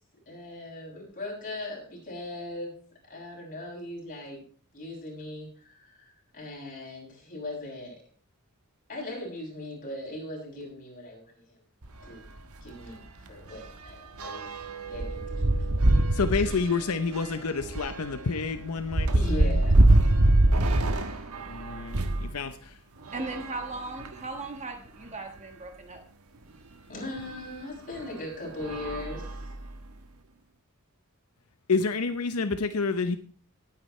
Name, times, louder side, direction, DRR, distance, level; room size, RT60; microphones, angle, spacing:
voice 1, 0.3-2.8 3.0-4.4 4.7-8.0 8.9-11.6 12.1-12.3 12.6-14.5 14.9-15.8 19.1-19.8 20.1-20.2 26.9-29.5, left 1 dB, 40° left, -3 dB, 7.1 m, -39 dB
sound 1, 11.8-12.0 12.4-12.5 12.8-22.3 23.0-24.4 25.0-25.1 25.4-25.5 27.2-27.3 27.9-28.1 28.6-29.9, right 1 dB, 80° right, 1.3 m, -25 dB
voice 2, 16.1-19.6 21.5-22.7 31.7-33.2, left 4 dB, 85° left, 9 dB, 0.8 m, -29 dB
voice 3, 23.1-26.0, right 3 dB, 30° right, 5 dB, 1.4 m, -37 dB
18.5 x 9.5 x 3.2 m, 0.43 s
head